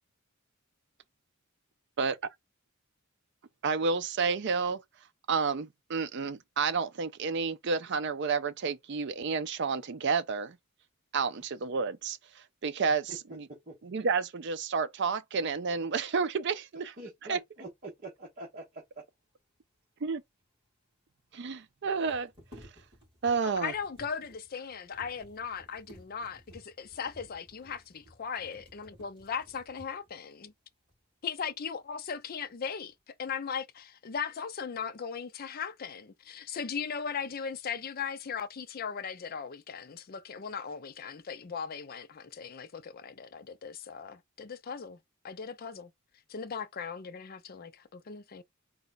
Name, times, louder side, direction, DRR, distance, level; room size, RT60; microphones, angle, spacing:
voice 1, 3.6-4.8 5.3-10.6 11.1-13.5 13.8-16.9 17.3-17.4 20.0-20.2 21.3-22.3 23.2-23.7, right 5 dB, 55° right, 0.5 m, -30 dB
voice 2, 17.0-18.8, right 1 dB, 40° right, 1.2 m, -44 dB
sound 1, 20.4-20.5 20.6-20.7 21.8-30.2 30.9-31.0 31.4-32.1 32.4-33.0, equal, 20° right, 2.6 m, -56 dB
voice 3, 23.4-30.5 31.2-45.0 45.2-45.9 46.3-48.4, left 6 dB, 45° left, 0.4 m, -38 dB
4.0 x 2.3 x 3.9 m
head